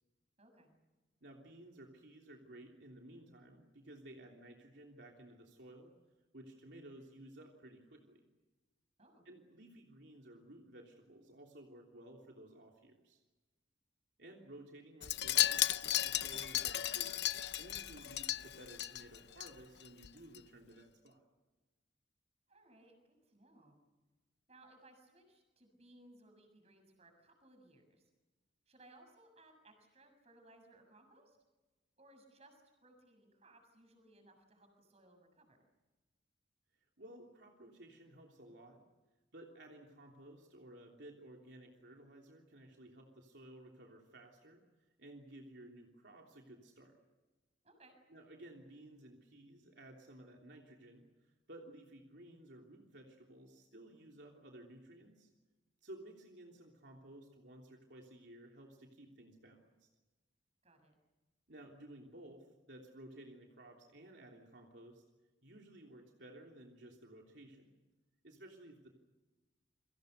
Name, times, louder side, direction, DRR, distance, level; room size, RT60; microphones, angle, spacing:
voice 1, 0.4-0.7 9.0-9.3 22.5-23.8 24.5-28.1 28.7-31.4 32.0-35.6 47.6-48.0 60.6-60.9, right 1 dB, 35° right, 5 dB, 6.8 m, -63 dB
voice 2, 1.2-5.9 6.3-8.2 9.2-13.2 14.2-17.2 17.6-21.3 37.0-38.8 39.3-44.6 45.0-47.0 48.1-55.3 55.8-59.9 61.5-65.0 65.4-67.8 68.2-68.9, right 1 dB, 70° right, 0 dB, 3.2 m, -55 dB
Wind chime, 15.0-19.5 19.8-20.1 20.3-20.4, left 13 dB, 65° left, 0.7 m, -35 dB
29.5 x 24.5 x 6.7 m, 1.2 s
head